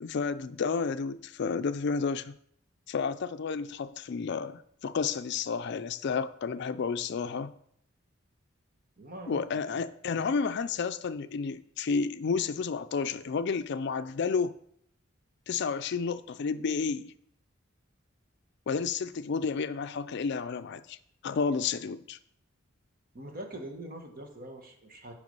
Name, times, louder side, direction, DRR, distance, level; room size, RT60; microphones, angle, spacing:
voice 1, 0.0-2.4 2.9-7.5 9.3-14.5 15.5-17.1 18.7-21.0 21.2-22.2, left 5 dB, 60° left, 0.4 m, -31 dB
voice 2, 9.0-9.8 23.1-25.1, right 1 dB, 45° right, 1.3 m, -43 dB
8.0 x 5.1 x 5.4 m
head